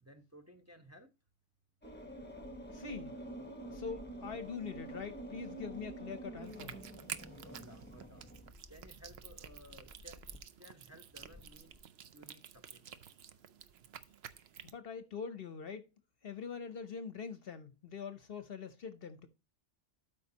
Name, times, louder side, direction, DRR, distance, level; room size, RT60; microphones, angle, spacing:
voice 1, 0.0-1.1 7.4-8.3 8.7-11.8 12.1-12.9, equal, 15° right, 0.9 m, -57 dB
sound 1, 1.8-10.4 11.2-11.8, right 1 dB, 10° left, 1.1 m, -48 dB
voice 2, 2.7-3.2 3.7-6.8 14.6-15.9 16.2-19.3, left 6 dB, 60° left, 0.9 m, -43 dB
sound 2, 6.4-14.7, right 9 dB, 65° right, 0.9 m, -51 dB
12.5 x 5.3 x 2.8 m
omnidirectional pair, 1.2 m